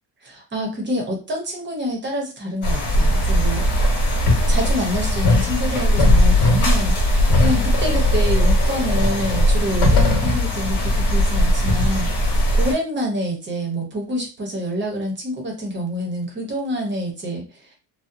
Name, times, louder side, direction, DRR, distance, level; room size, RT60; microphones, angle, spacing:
voice 1, 0.2-4.0 4.5-7.0 7.4-12.1 12.5-17.4, equal, 25° right, 0 dB, 0.8 m, -27 dB
Amb - Bamboos creaking and rustling with the wind, 2.6-12.7, left 1 dB, 70° left, 1.1 m, -18 dB
2.7 x 2.1 x 2.5 m, 0.33 s
cardioid pair, 155°, 43 cm